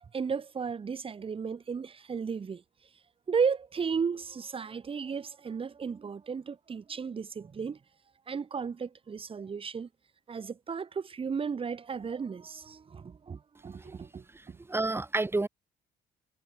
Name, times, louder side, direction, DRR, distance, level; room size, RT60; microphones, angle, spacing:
voice 1, 0.1-2.6 3.3-7.8 8.3-9.9 10.3-14.6, right 6 dB, 30° right, 3.4 m, -34 dB
voice 2, 14.3-15.5, right 2 dB, 15° right, 5.2 m, -31 dB
cardioid pair, 110°, 17 cm